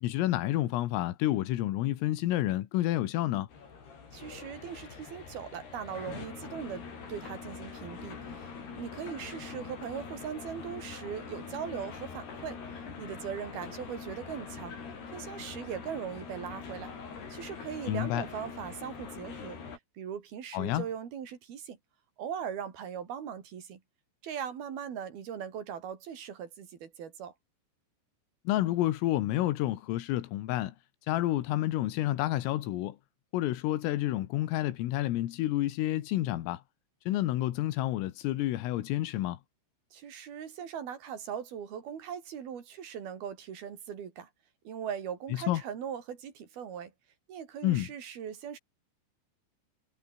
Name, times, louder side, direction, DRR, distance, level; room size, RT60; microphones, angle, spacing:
voice 1, 0.0-3.5 17.9-18.3 20.5-20.9 28.5-30.8 31.0-33.0 33.3-36.6 37.1-39.4 45.3-45.6 47.6-47.9, left 15 dB, 85° left, 4.2 m, -29 dB
sound 1, 3.5-19.8, left 5 dB, 55° left, 7.5 m, -44 dB
voice 2, 4.1-14.8 15.1-16.9 17.3-19.6 20.0-21.8 22.2-23.8 24.2-27.3 39.9-44.3 44.6-46.9 47.3-48.6, right 8 dB, 50° right, 4.7 m, -40 dB
omnidirectional pair, 5.8 m